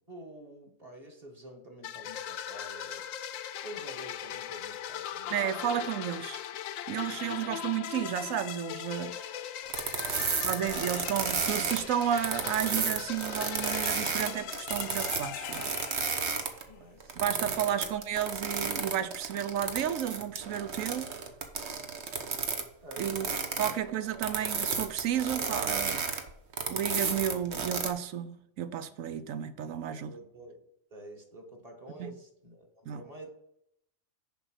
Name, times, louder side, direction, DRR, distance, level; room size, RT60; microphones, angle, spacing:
voice 1, 0.1-3.2 3.6-5.9 7.1-7.5 10.1-10.9 16.7-17.9 22.8-24.2 29.9-30.6 30.9-33.3, right 1 dB, 30° right, 1.5 m, -49 dB
sound 1, 1.8-16.6, left 10 dB, 80° left, 1.0 m, -39 dB
voice 2, 5.3-6.4 6.9-9.2 10.4-15.7 17.2-21.1 23.0-23.3 23.6-26.0 26.7-30.1 32.0-32.1 32.9-33.0, right 10 dB, 80° right, 1.1 m, -32 dB
sound 2, 9.7-16.6 17.0-22.6 22.9-27.9, right 5 dB, 60° right, 1.2 m, -32 dB
7.1 x 5.5 x 6.3 m
omnidirectional pair, 1.4 m